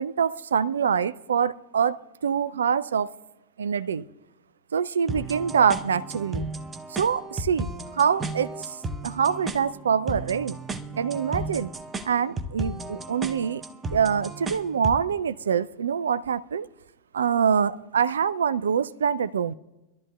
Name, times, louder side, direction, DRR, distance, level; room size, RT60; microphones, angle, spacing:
voice 1, 0.0-3.1 3.6-4.1 4.7-6.5 6.9-8.8 9.0-10.6 11.0-11.7 12.0-13.6 13.9-16.7 17.1-19.5, right 7 dB, 70° right, 0.4 m, -25 dB
sound 1, 5.1-15.1, right 2 dB, 15° right, 0.7 m, -34 dB
25.0 x 12.5 x 2.3 m
figure-of-eight pair, 90°, 0 cm